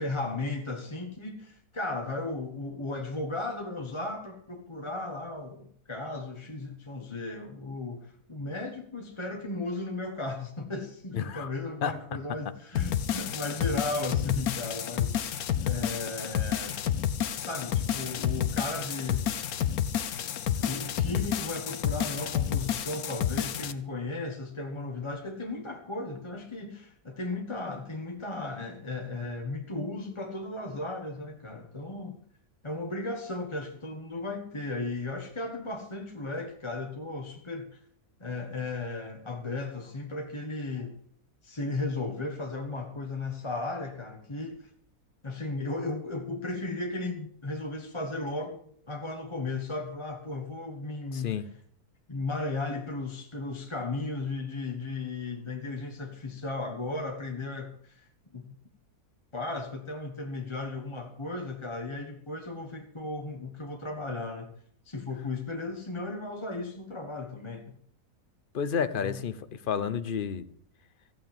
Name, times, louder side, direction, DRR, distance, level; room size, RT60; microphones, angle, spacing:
voice 1, 0.0-16.8 17.4-19.3 20.2-32.2 32.6-37.8 38.2-41.0 41.4-44.7 45.2-48.6 48.8-51.5 52.1-58.4 59.3-64.5 64.8-67.8 68.9-69.2, left 2 dB, 20° left, 3 dB, 1.2 m, -35 dB
voice 2, 11.1-11.5 11.8-11.9 51.1-51.4 68.5-69.4 69.7-70.4, left 7 dB, 45° left, 13 dB, 0.8 m, -30 dB
sound 1, 12.8-23.7, left 9 dB, 70° left, 1.3 m, -30 dB
15.0 x 8.7 x 7.4 m, 0.62 s
omnidirectional pair, 1.6 m